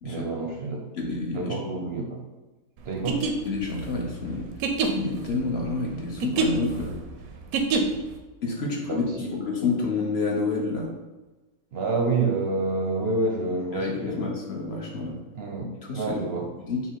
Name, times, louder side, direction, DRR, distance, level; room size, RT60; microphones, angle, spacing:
voice 1, 0.0-0.8 1.3-2.2 2.9-3.2 8.6-9.3 11.7-14.3 15.4-16.5, right 3 dB, 60° right, 1 dB, 0.7 m, -28 dB
voice 2, 1.0-1.6 3.4-4.5 4.9-7.0 8.4-10.9 13.7-15.2 15.8-16.2 16.7-16.8, left 3 dB, 55° left, -1 dB, 0.9 m, -29 dB
sound 1, 2.9-8.2, right 4 dB, 85° right, 1.1 m, -27 dB
5.5 x 2.0 x 4.5 m, 1.1 s
omnidirectional pair, 1.5 m